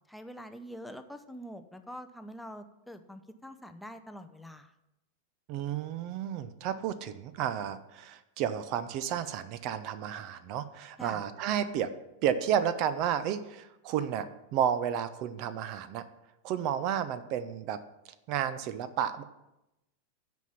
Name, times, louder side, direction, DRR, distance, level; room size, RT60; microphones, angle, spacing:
voice 1, 0.1-4.7 11.0-11.2, equal, 5° left, 8 dB, 0.6 m, -45 dB
voice 2, 5.5-11.9 12.2-14.3 14.5-16.0 16.4-17.8 18.3-19.2, right 9 dB, 40° right, 13 dB, 0.6 m, -31 dB
9.2 x 5.3 x 7.1 m, 0.92 s
figure-of-eight pair, 90°, 0 cm